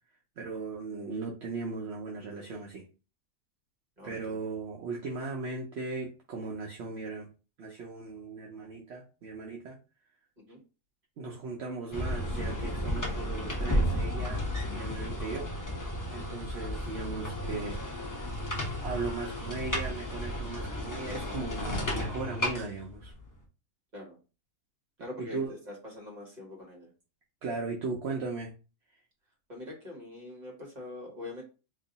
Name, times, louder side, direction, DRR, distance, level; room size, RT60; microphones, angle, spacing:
voice 1, 0.4-2.8 4.0-7.3 7.6-9.8 11.2-15.5 16.1-18.1 18.8-23.1 25.2-25.5 27.4-28.5, right 4 dB, 55° right, -1 dB, 0.8 m, -37 dB
voice 2, 4.0-4.4 10.4-10.6 23.9-24.2 25.0-26.9 29.5-31.4, left 2 dB, 30° right, -2 dB, 1.5 m, -43 dB
sound 1, 11.9-23.3, equal, 20° left, 0.5 m, -33 dB
3.0 x 2.6 x 3.9 m, 0.32 s
omnidirectional pair, 1.6 m